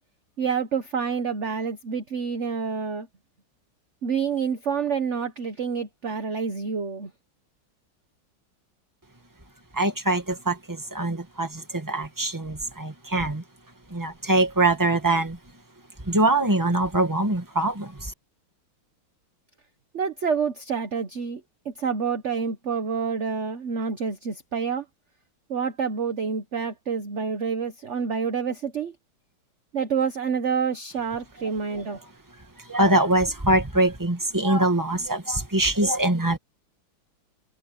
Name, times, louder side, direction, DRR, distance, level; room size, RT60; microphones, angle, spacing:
voice 1, 0.4-3.1 4.0-7.1 19.9-24.8 25.5-28.9 29.7-32.0, right 6 dB, 45° right, 1.2 m, -28 dB
voice 2, 9.7-13.4 13.9-15.4 16.0-18.1 31.7-31.8 32.6-36.4, right 2 dB, 10° right, 2.0 m, -23 dB
open air
omnidirectional pair, 2.2 m